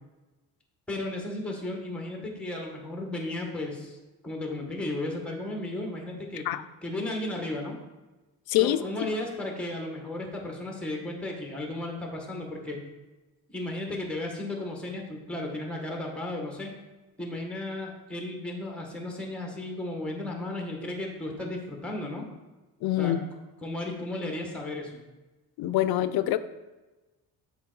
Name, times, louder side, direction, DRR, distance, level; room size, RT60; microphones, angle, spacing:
voice 1, 0.9-4.0 4.2-6.5 6.8-7.8 8.6-12.8 13.5-16.7 17.2-22.3 23.0-23.1 23.6-25.0, left 1 dB, 5° left, 1 dB, 1.2 m, -34 dB
voice 2, 8.5-8.8 22.8-23.2 25.6-26.4, left 13 dB, 70° left, 12 dB, 0.5 m, -25 dB
7.2 x 4.1 x 3.9 m, 1.1 s
cardioid pair, 120°, 39 cm